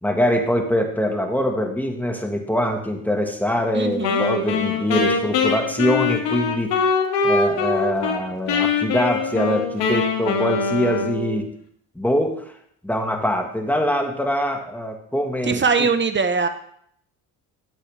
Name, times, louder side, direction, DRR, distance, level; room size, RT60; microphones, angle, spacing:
voice 1, 0.0-6.8 7.2-11.5 11.9-12.4 12.8-15.6, equal, 5° left, 3 dB, 1.7 m, -23 dB
voice 2, 3.7-4.3 15.4-16.5, right 5 dB, 25° right, 9 dB, 1.2 m, -21 dB
Wind instrument woodwind instrument, 4.0-8.2 8.5-11.4, left 4 dB, 75° left, 2.4 m, -22 dB
12.0 x 8.2 x 3.5 m, 0.66 s
cardioid pair, 85°, 41 cm